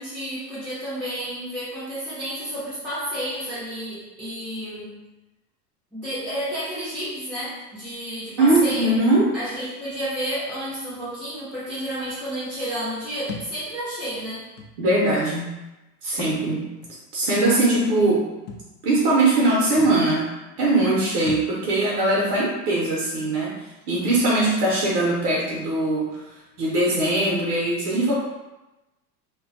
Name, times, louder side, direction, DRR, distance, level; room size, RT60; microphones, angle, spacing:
voice 1, 0.0-5.0 5.9-9.0 9.3-14.5, equal, 5° right, -12 dB, 0.6 m, -31 dB
voice 2, 8.4-9.3 14.8-15.5 16.0-16.7 17.1-18.2 18.8-20.3 20.6-23.5 23.9-26.2 26.6-28.1, right 2 dB, 70° right, -5 dB, 0.8 m, -21 dB
Thump thud, 13.3-13.5 14.6-14.7 16.1-16.4 16.8-16.9 18.5-18.7 19.5-19.6 19.8-20.0 21.2-21.5, left 4 dB, 50° left, 0.5 m, -35 dB
2.3 x 2.2 x 2.6 m, 1.0 s
hypercardioid pair, 95°, 47 cm